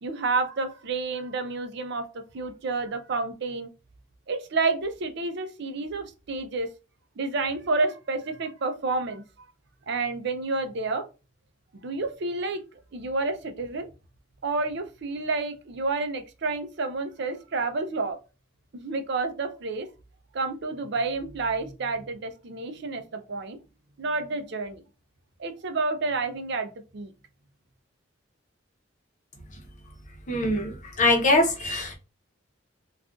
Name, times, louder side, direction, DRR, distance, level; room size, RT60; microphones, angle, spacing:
voice 1, 0.0-3.7 4.3-6.7 7.2-9.2 9.9-11.1 11.7-12.6 12.9-13.9 14.4-18.2 18.7-19.9 20.3-23.6 24.0-24.8 25.4-27.1, right 3 dB, 55° right, 8 dB, 0.5 m, -29 dB
voice 2, 30.3-31.9, left 2 dB, 40° left, 2 dB, 0.8 m, -23 dB
2.4 x 2.4 x 3.6 m, 0.31 s
head